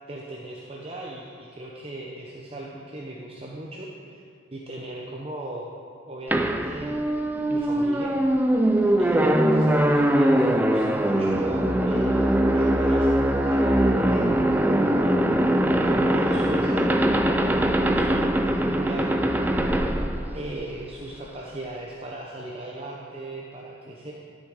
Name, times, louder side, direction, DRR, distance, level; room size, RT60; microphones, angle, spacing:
voice 1, 0.1-4.2 4.5-5.7 6.1-6.9 7.5-8.2 9.0-14.5 15.8-19.1 20.3-24.1, right 2 dB, 30° right, -3 dB, 0.7 m, -37 dB
sound 1, 6.3-21.0, right 1 dB, 10° right, 0.3 m, -22 dB
12.5 x 6.2 x 4.8 m, 2.4 s
head